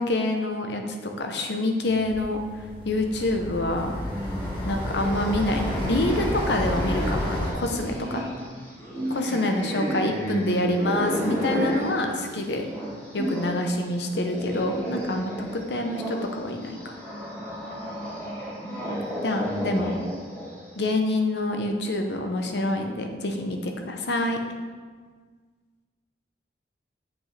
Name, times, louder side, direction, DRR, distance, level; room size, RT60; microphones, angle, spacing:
voice 1, 0.0-4.0 4.6-8.2 9.1-12.6 13.1-16.9 19.2-19.9 20.7-24.4, left 1 dB, 70° left, 4 dB, 0.8 m, -27 dB
sound 1, 1.8-7.5, equal, 30° left, 1.6 m, -31 dB
voice 2, 4.0-4.6 10.1-10.7 19.5-19.9, right 1 dB, 10° right, -2 dB, 0.7 m, -33 dB
sound 2, 4.8-13.6 13.9-20.7, equal, 10° left, 2.1 m, -33 dB
8.0 x 5.9 x 3.3 m, 1.5 s
head